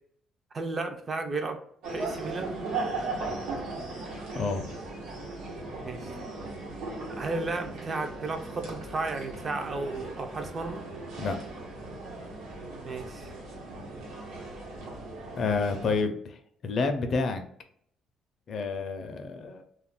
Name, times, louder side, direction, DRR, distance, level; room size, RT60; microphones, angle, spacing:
voice 1, 0.5-1.6 1.9-2.5 5.8-6.0 7.1-10.9 12.8-13.3, right 3 dB, 30° right, 6 dB, 0.3 m, -33 dB
sound 1, 1.8-16.0, right 3 dB, 90° right, 1.1 m, -38 dB
voice 2, 3.9-4.7 11.2-11.4 15.4-17.4 18.5-19.7, left 4 dB, 45° left, 7 dB, 0.4 m, -30 dB
2.3 x 2.0 x 3.4 m, 0.66 s
cardioid pair, 140°, 0 cm